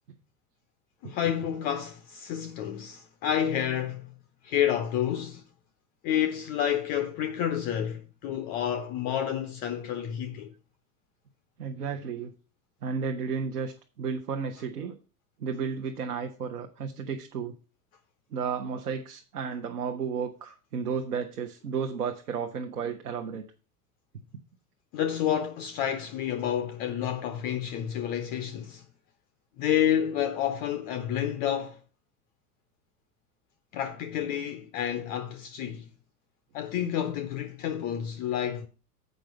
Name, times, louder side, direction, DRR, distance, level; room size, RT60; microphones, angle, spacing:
voice 1, 1.0-4.1 4.4-5.4 6.0-10.5 24.9-28.8 29.6-31.8 33.7-35.9 36.5-38.7, left 10 dB, 20° left, 0.4 m, -29 dB
voice 2, 11.6-12.3 12.8-15.0 15.4-17.5 18.3-23.4, right 6 dB, 70° right, 0.9 m, -33 dB
7.4 x 5.3 x 5.9 m
figure-of-eight pair, 85°, 48 cm